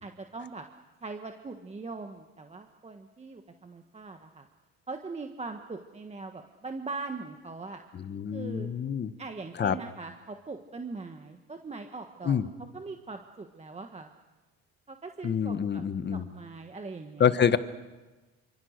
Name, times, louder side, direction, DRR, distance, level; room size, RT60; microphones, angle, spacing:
voice 1, 0.0-0.7 1.0-4.5 4.9-7.8 8.3-8.7 9.2-12.4 12.7-14.1 14.9-15.8 16.1-17.3, right 3 dB, 20° right, 5 dB, 1.5 m, -41 dB
voice 2, 7.9-9.1 9.6-9.8 12.2-12.5 15.2-16.3 17.2-17.6, left 7 dB, 30° left, 12 dB, 1.3 m, -26 dB
27.5 x 26.0 x 6.7 m, 1.2 s
cardioid pair, 115°, 34 cm